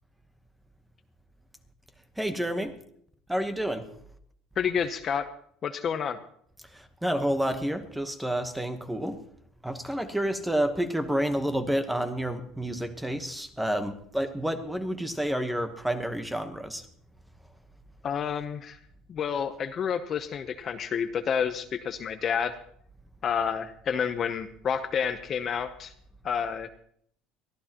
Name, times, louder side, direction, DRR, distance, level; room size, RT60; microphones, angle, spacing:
voice 1, 2.2-2.7 3.3-3.8 6.7-9.2 9.6-16.8, right 1 dB, 5° right, 8 dB, 1.1 m, -29 dB
voice 2, 4.6-5.3 5.6-6.2 18.0-18.8 19.1-22.5 23.2-25.9 26.2-26.7, left 7 dB, 30° left, 8 dB, 0.7 m, -29 dB
23.0 x 14.5 x 2.9 m, 0.65 s
cardioid pair, 160°, 0 cm